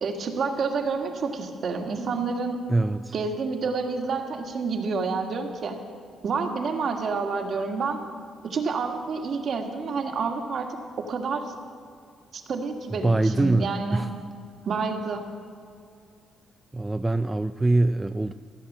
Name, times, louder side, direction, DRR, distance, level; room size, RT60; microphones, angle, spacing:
voice 1, 0.0-2.6 3.1-5.8 6.2-8.0 8.5-10.7 11.1-11.6 12.3-14.0 14.7-15.2, right 4 dB, 55° right, 3 dB, 1.8 m, -28 dB
voice 2, 2.7-3.1 12.9-14.1 16.7-18.3, right 2 dB, 15° right, 9 dB, 0.4 m, -23 dB
15.5 x 10.5 x 7.4 m, 2.3 s
cardioid pair, 115°, 0 cm